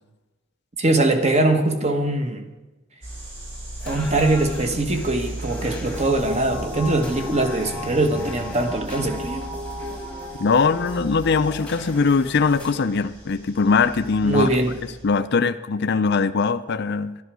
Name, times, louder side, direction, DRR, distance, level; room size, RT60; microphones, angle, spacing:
voice 1, 0.8-2.4 3.9-9.5 14.2-14.8, right 2 dB, 30° right, 6 dB, 1.3 m, -22 dB
sound 1, 3.0-15.0, right 2 dB, 60° right, 5.3 m, -38 dB
sound 2, 3.8-12.8, left 2 dB, 5° left, 1.3 m, -42 dB
sound 3, 5.9-12.4, left 1 dB, 10° right, 0.8 m, -35 dB
voice 2, 10.4-14.5 15.0-17.2, left 4 dB, 50° left, 10 dB, 0.5 m, -21 dB
11.5 x 11.0 x 6.2 m, 1.1 s
head